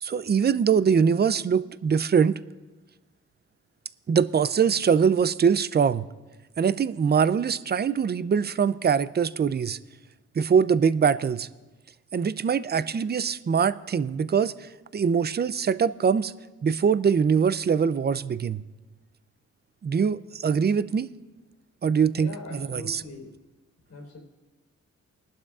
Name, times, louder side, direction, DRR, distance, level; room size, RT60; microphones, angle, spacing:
voice 1, 0.0-2.4 4.1-6.1 6.6-9.8 10.4-11.5 12.1-16.3 16.6-18.6 19.8-21.1 21.8-23.0, right 6 dB, 35° right, 16 dB, 0.5 m, -23 dB
voice 2, 22.1-23.4 23.9-24.2, left 2 dB, 75° left, 1 dB, 3.8 m, -41 dB
21.0 x 12.0 x 2.4 m, 1.2 s
cardioid pair, 70°, 29 cm